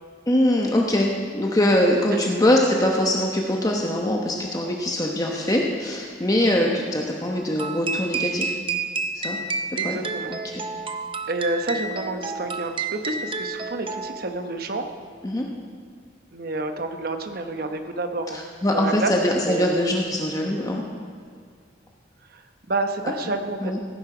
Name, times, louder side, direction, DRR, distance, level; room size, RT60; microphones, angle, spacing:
voice 1, 0.3-8.5 9.1-9.4 9.8-10.0 10.3-10.6 15.2-15.4 18.3-20.8 23.6-23.8, left 1 dB, 20° left, 0 dB, 1.0 m, -22 dB
sound 1, 7.6-14.4, right 4 dB, 30° right, 0.7 m, -30 dB
voice 2, 9.8-10.3 11.3-14.9 16.3-18.5 18.7-19.1 19.5-19.7 22.3-22.4 22.7-23.7, right 2 dB, 55° right, 6 dB, 1.0 m, -29 dB
16.0 x 9.7 x 5.0 m, 2.2 s
head